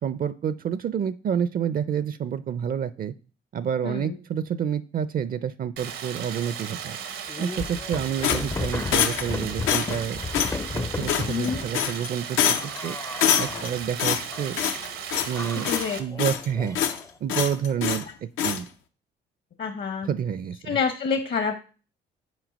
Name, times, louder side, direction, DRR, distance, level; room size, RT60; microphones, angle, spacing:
voice 1, 0.0-3.1 3.5-7.0 7.4-10.2 10.7-13.0 13.4-14.6 15.3-15.7 16.0-16.8 17.2-18.7 20.0-20.8, right 8 dB, 45° right, 16 dB, 0.4 m, -29 dB
voice 2, 3.8-4.2 11.3-11.7 15.7-16.0 19.6-20.1 20.7-21.6, left 5 dB, 55° left, 7 dB, 0.9 m, -27 dB
Stream, 5.8-16.0, right 8 dB, 85° right, 1.0 m, -36 dB
sound 1, 7.3-11.7 12.6-13.9 14.3-14.9 15.3-17.2, left 3 dB, 15° left, 0.4 m, -34 dB
sound 2, 8.2-9.3 9.7-10.0 10.3-10.6 11.1-11.5 11.7-12.1 12.4-12.8 13.2-13.7 14.0-14.9 15.1-15.4 15.7-16.5 16.8-17.0 17.3-18.1 18.4-18.6, left 9 dB, 85° left, 0.7 m, -25 dB
6.3 x 4.6 x 5.1 m, 0.38 s
cardioid pair, 90°, 20 cm